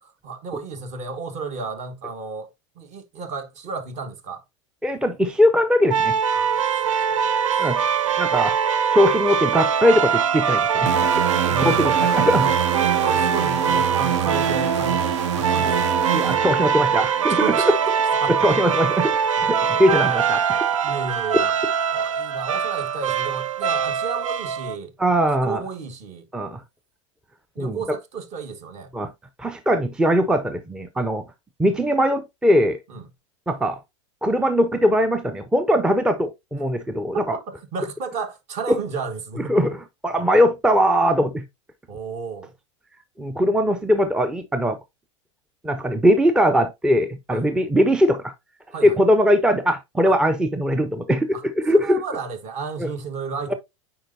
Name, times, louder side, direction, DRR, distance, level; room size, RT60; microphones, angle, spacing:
voice 1, 0.0-2.5 2.7-4.4 6.3-7.4 11.5-12.5 13.0-15.9 17.3-17.9 18.2-18.5 20.8-21.5 21.9-24.9 25.4-26.3 27.5-28.9 32.9-33.1 37.3-39.7 41.9-42.5 47.3-47.5 48.7-49.0 50.0-50.1 51.3-51.4 51.7-53.5, right 4 dB, 45° right, 1.5 m, -32 dB
voice 2, 4.8-6.2 7.6-7.8 8.2-8.6 8.9-11.2 11.6-12.4 16.1-17.5 18.4-20.6 25.0-25.6 26.3-26.6 27.6-27.8 28.9-29.1 29.4-31.3 31.6-32.8 33.5-33.8 34.2-37.4 38.7-38.8 39.4-39.8 40.0-41.4 43.2-44.8 45.6-48.3 48.8-51.4 51.6-52.0 52.8-52.9, equal, 5° right, 0.5 m, -20 dB
sound 1, 5.9-24.8, right 7 dB, 90° right, 0.5 m, -22 dB
sound 2, 10.9-17.3, right 8 dB, 70° right, 1.0 m, -26 dB
8.8 x 4.5 x 2.6 m
hypercardioid pair, 100°, 16 cm